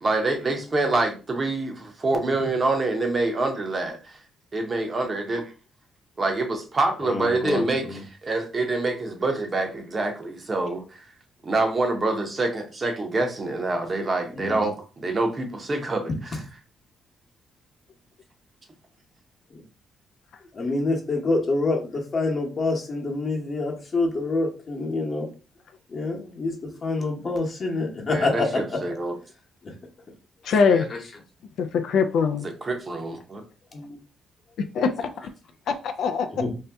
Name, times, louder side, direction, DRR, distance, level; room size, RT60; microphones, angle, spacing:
voice 1, 0.0-4.2 4.5-5.5 6.2-11.1 11.4-16.1 28.1-29.2 32.6-33.4, right 2 dB, 35° right, 0.7 m, -26 dB
voice 2, 7.0-8.0 14.4-14.7 19.5-19.6 20.5-25.3 25.9-28.8 29.6-29.7 30.7-30.8 33.7-34.0 36.3-36.5, left 3 dB, 40° left, 1.0 m, -27 dB
voice 3, 30.4-30.9 31.6-32.5 34.6-35.1 36.0-36.3, left 5 dB, 70° left, 0.3 m, -22 dB
2.7 x 2.2 x 3.4 m
cardioid pair, 90°, 0 cm